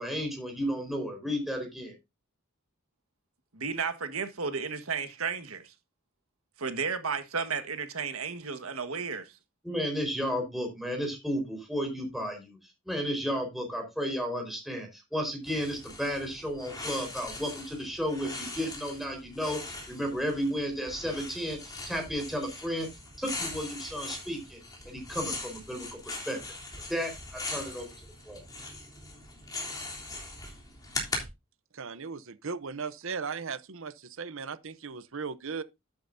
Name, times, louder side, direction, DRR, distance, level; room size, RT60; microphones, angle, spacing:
voice 1, 0.0-1.9 9.6-12.6 12.9-22.9 23.2-24.6 24.9-26.4 26.9-27.9 28.3-28.4, equal, ahead, 4.5 m, -33 dB
voice 2, 3.5-5.7 6.6-9.3, right 5 dB, 80° right, 1.5 m, -33 dB
sound 1, 15.4-31.3, left 2 dB, 20° left, 3.4 m, -40 dB
voice 3, 31.8-35.6, right 5 dB, 65° right, 0.8 m, -37 dB
11.5 x 8.8 x 2.7 m
head